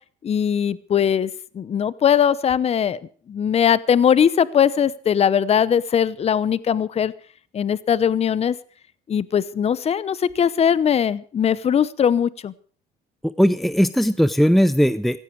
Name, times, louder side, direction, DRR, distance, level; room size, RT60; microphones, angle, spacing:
voice 1, 0.2-3.0 3.3-7.1 7.5-8.6 9.1-12.5, left 8 dB, 40° left, 18 dB, 0.8 m, -20 dB
voice 2, 13.2-15.2, equal, ahead, 14 dB, 0.6 m, -18 dB
16.5 x 15.5 x 4.7 m, 0.43 s
cardioid pair, 110°, 17 cm